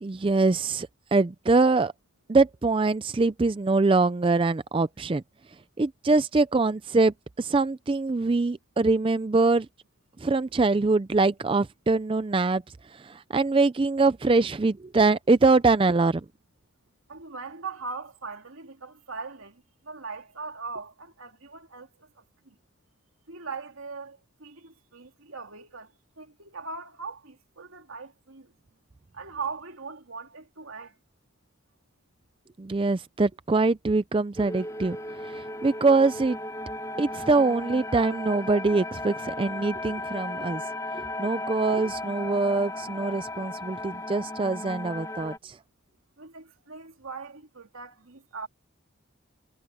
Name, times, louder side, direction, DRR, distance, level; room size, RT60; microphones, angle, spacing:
voice 1, 0.0-1.9 2.3-5.2 5.8-9.7 10.2-12.6 12.9-16.2 32.6-35.0 35.2-36.4 37.0-40.6 40.9-45.6, right 3 dB, 25° right, 0.4 m, -23 dB
voice 2, 17.1-21.9 22.4-22.6 23.3-28.5 29.1-30.9 46.2-48.5, right 4 dB, 80° right, 2.8 m, -40 dB
sound 1, 34.4-45.4, left 2 dB, 15° left, 2.7 m, -36 dB
head